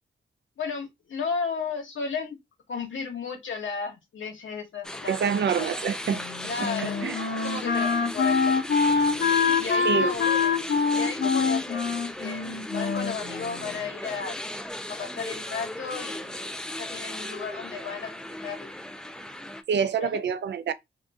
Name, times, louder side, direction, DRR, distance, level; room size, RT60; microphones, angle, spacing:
voice 1, 0.6-2.3 2.7-5.2 5.5-5.8 6.4-7.1 7.4-8.5 9.2-10.3 10.9-11.9 12.2-14.4 14.9-18.1 18.4-18.7 20.0-20.2, left 5 dB, 85° left, 1.2 m, -34 dB
sound 1, 4.8-19.6, left 1 dB, 5° left, 0.3 m, -37 dB
voice 2, 5.1-6.2 6.6-7.2 9.8-10.2 19.7-20.7, right 7 dB, 65° right, 0.4 m, -27 dB
Wind instrument woodwind instrument, 6.1-13.9, left 5 dB, 60° left, 0.7 m, -25 dB
2.6 x 2.5 x 3.5 m
wide cardioid pair, 105°, 19 cm